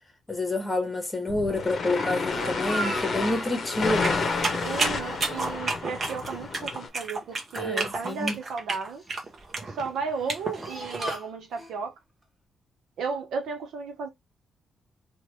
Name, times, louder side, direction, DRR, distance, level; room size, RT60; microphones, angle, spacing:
voice 1, 0.3-4.2 7.5-8.4, left 2 dB, 20° left, 1.0 m, -28 dB
sound 1, 1.3-6.9, left 4 dB, 45° left, 0.7 m, -30 dB
Speech, 2.0-3.6 4.0-4.5 4.9-6.0 6.3-6.5 7.3-8.3 9.0-9.4 10.0-11.7, right 1 dB, 5° right, 1.1 m, -38 dB
sound 2, 4.0-11.2, right 3 dB, 40° right, 0.8 m, -32 dB
voice 2, 4.6-9.0 9.6-11.9 13.0-14.1, right 5 dB, 85° right, 0.9 m, -34 dB
3.0 x 2.4 x 3.1 m
cardioid pair, 135°, 0 cm